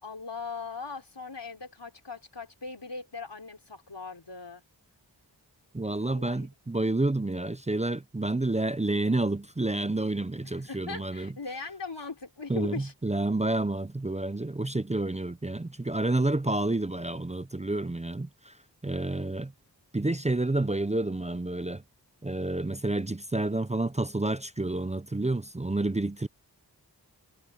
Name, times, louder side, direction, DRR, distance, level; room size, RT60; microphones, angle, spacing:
voice 1, 0.0-4.6 6.0-6.5 10.4-12.9 19.0-19.3, left 4 dB, 90° left, 4.6 m, -40 dB
voice 2, 5.7-11.3 12.5-18.5 18.8-19.5 19.9-21.8 22.2-26.3, right 2 dB, 15° right, 0.5 m, -29 dB
wide cardioid pair, 45°, 41 cm